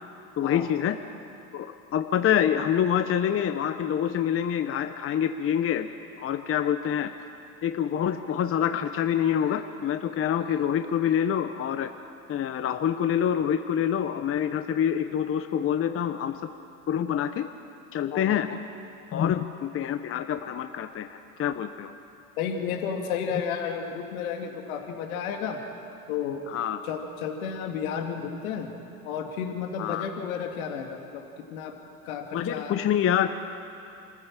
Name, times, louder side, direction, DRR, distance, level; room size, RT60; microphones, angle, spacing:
voice 1, 0.4-1.0 1.5-5.9 6.2-7.1 7.6-11.9 12.3-16.4 16.9-17.5 17.9-18.6 19.1-21.9 23.3-23.4 26.5-26.8 29.8-30.1 32.3-33.3, left 9 dB, 30° left, 8 dB, 0.9 m, -26 dB
voice 2, 22.4-25.6 26.1-26.4 26.8-28.7 29.0-31.2 31.5-31.7 32.0-32.8, left 7 dB, 75° left, 3 dB, 2.3 m, -32 dB
26.0 x 14.5 x 7.5 m, 2.7 s
hypercardioid pair, 90°, 43 cm